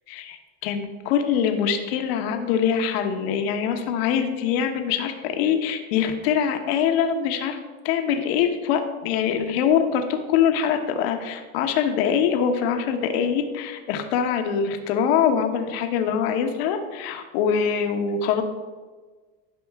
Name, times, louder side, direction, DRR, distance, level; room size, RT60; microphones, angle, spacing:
voice 1, 0.1-7.6 7.8-18.4, left 7 dB, 75° left, 5 dB, 1.1 m, -23 dB
11.5 x 5.5 x 3.5 m, 1.4 s
supercardioid pair, 130°, 31 cm